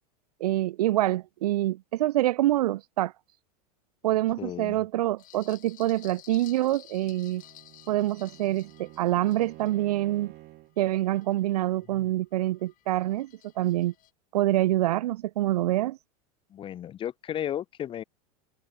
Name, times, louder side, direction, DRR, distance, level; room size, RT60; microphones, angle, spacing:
voice 1, 0.4-3.1 4.0-7.4 7.9-10.3 10.8-13.3 13.6-13.9 14.3-16.0, right 15 dB, 85° right, 0.5 m, -26 dB
voice 2, 4.4-4.8 11.9-12.1 16.5-18.0, left 10 dB, 25° left, 0.6 m, -34 dB
sound 1, 5.2-11.9 12.3-14.1, left 15 dB, 45° left, 4.7 m, -54 dB
Bowed string instrument, 7.0-10.8, right 20 dB, 50° right, 2.8 m, -50 dB
hypercardioid pair, 110°, 19 cm